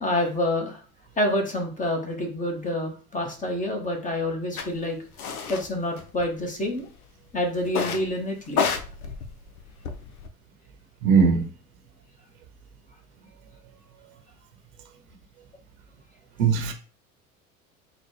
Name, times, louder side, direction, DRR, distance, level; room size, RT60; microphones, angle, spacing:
voice 1, 0.0-0.8 1.2-5.0 5.5-6.9 7.3-8.6, left 1 dB, 20° left, 1.1 m, -27 dB
sound 1, 4.6-4.7 5.2-5.6 6.0-6.7 7.7-8.1 8.5-10.3, left 6 dB, 90° left, 0.6 m, -29 dB
voice 2, 11.0-11.4 16.4-16.7, right 5 dB, 70° right, 0.9 m, -19 dB
3.9 x 2.3 x 3.2 m
hypercardioid pair, 80°, 43 cm